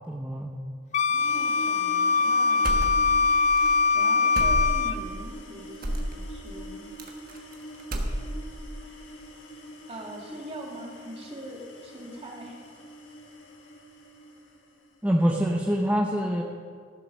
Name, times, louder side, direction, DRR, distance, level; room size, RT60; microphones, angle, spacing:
voice 1, 0.1-0.5 15.0-16.4, equal, 10° right, 0 dB, 0.6 m, -25 dB
Wind instrument woodwind instrument, 0.9-5.0, left 4 dB, 40° left, 0.3 m, -22 dB
sound 1, 1.1-15.0, equal, 80° left, 1.7 m, -44 dB
voice 2, 1.3-3.2 3.9-6.9 9.9-12.6, right 1 dB, 30° right, -1 dB, 1.8 m, -42 dB
sound 2, 2.6-3.3 3.6-3.7 4.3-5.0 5.8-6.2 7.0-7.5 7.8-8.5, right 1 dB, 50° right, 1.2 m, -29 dB
14.5 x 7.6 x 6.3 m, 2.1 s
head